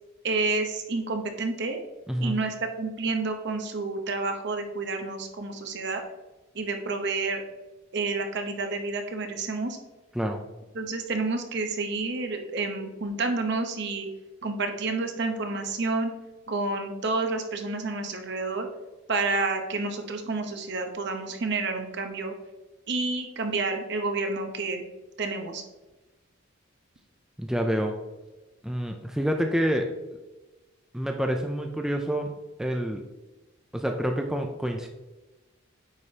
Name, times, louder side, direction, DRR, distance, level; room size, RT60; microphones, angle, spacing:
voice 1, 0.2-1.8 2.2-6.0 6.5-7.4 7.9-9.8 10.7-14.1 14.4-16.1 16.5-18.7 19.1-22.3 22.9-24.8 25.2-25.6, right 3 dB, 55° right, 5 dB, 0.9 m, -29 dB
voice 2, 2.1-2.4 10.1-10.4 27.4-28.0 28.6-29.9 30.9-32.3 32.6-33.0 33.7-34.9, equal, 5° right, 2 dB, 0.4 m, -27 dB
8.7 x 5.0 x 2.8 m, 1.1 s
head